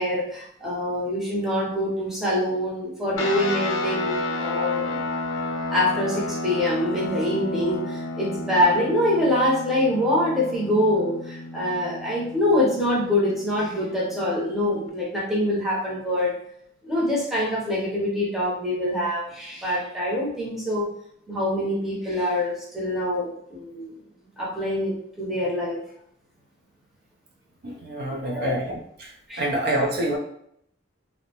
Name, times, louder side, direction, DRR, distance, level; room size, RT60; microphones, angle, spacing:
voice 1, 0.0-5.0 5.7-16.3 16.8-20.9 21.3-23.9 24.4-25.8 28.1-28.6 29.3-29.5, left 1 dB, ahead, -6 dB, 0.6 m, -25 dB
sound 1, 3.2-14.9, left 2 dB, 85° left, 0.4 m, -32 dB
voice 2, 27.6-29.1 29.4-30.2, right 1 dB, 55° right, -1 dB, 0.4 m, -27 dB
2.5 x 2.1 x 2.8 m, 0.73 s
head